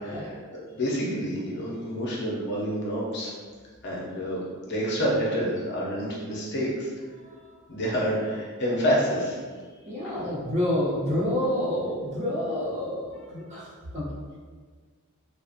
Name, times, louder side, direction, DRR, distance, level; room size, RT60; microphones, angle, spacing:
voice 1, 0.0-3.3 3.8-4.4 4.6-6.9 7.7-9.4, equal, 55° left, -4 dB, 0.6 m, -28 dB
voice 2, 7.2-7.6 9.8-14.1, left 1 dB, 35° right, -8 dB, 0.7 m, -29 dB
2.7 x 2.0 x 2.4 m, 1.5 s
head